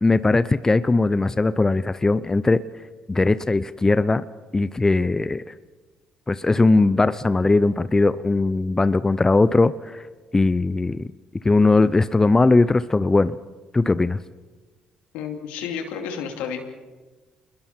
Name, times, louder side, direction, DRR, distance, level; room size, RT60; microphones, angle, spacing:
voice 1, 0.0-2.6 3.1-4.2 4.5-5.4 6.3-10.0 10.3-11.1 11.4-13.3 13.7-14.2, left 3 dB, 20° left, 14 dB, 0.7 m, -19 dB
voice 2, 15.1-16.6, left 7 dB, 80° left, 4 dB, 2.7 m, -31 dB
28.0 x 21.5 x 4.5 m, 1.3 s
hypercardioid pair, 60°, 2 cm